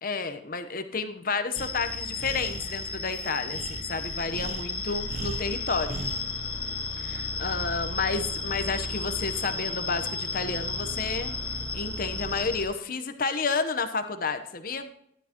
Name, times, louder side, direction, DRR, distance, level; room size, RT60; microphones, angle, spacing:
voice 1, 0.0-6.0 7.0-11.3 11.7-14.9, left 4 dB, 50° left, 8 dB, 0.9 m, -31 dB
sound 1, 1.5-12.6, left 3 dB, 30° left, 1.7 m, -33 dB
Breathing, 1.6-6.3, right 3 dB, 40° right, 0.4 m, -40 dB
12.0 x 9.5 x 2.9 m, 0.72 s
head